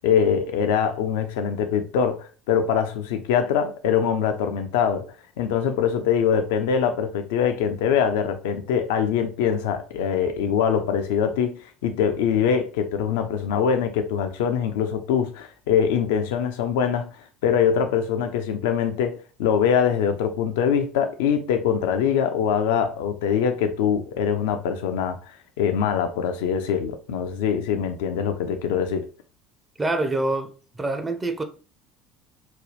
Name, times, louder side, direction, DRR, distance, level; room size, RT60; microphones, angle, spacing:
voice 1, 0.0-5.0 5.4-17.1 17.4-25.2 25.6-29.0, left 7 dB, 70° left, 0.5 m, -23 dB
voice 2, 29.8-31.4, right 2 dB, 20° right, 0.6 m, -26 dB
3.9 x 2.3 x 3.2 m
figure-of-eight pair, 65°, 0 cm